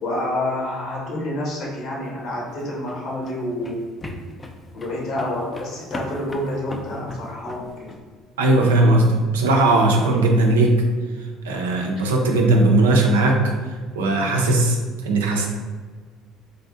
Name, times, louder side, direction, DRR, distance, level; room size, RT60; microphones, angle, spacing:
voice 1, 0.0-3.8 4.7-7.9, left 1 dB, 60° left, -3 dB, 1.0 m, -28 dB
sound 1, 2.3-8.0, left 2 dB, 25° left, 0.4 m, -38 dB
voice 2, 8.4-10.8 11.4-13.4 14.0-15.5, right 2 dB, 85° right, 1 dB, 0.4 m, -18 dB
3.2 x 2.5 x 2.4 m, 1.5 s
hypercardioid pair, 65°, 0 cm